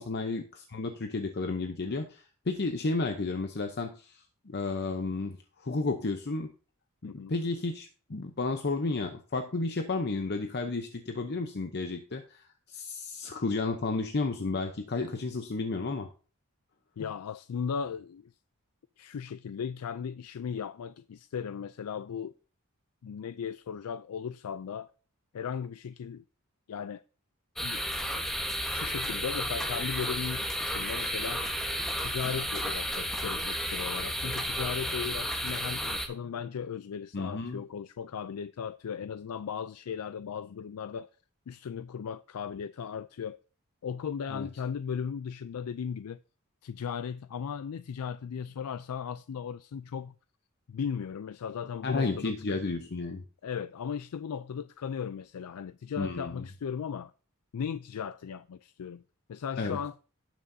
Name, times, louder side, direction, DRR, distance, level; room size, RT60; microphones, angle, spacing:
voice 1, 0.0-6.5 7.0-16.1 37.1-37.6 44.3-44.5 51.8-53.2 56.0-56.4 59.6-59.8, left 3 dB, 50° left, 0.7 m, -32 dB
voice 2, 17.0-18.3 19.0-22.3 23.0-24.9 25.3-26.2 26.7-27.0 27.6-27.8 28.7-31.6 32.0-41.1 41.5-43.4 43.8-46.2 46.6-50.1 50.7-52.6 53.4-57.1 57.5-59.0 59.3-59.9, left 7 dB, 85° left, 0.4 m, -37 dB
sound 1, 27.6-36.1, equal, ahead, 1.2 m, -32 dB
18.0 x 6.2 x 2.7 m
head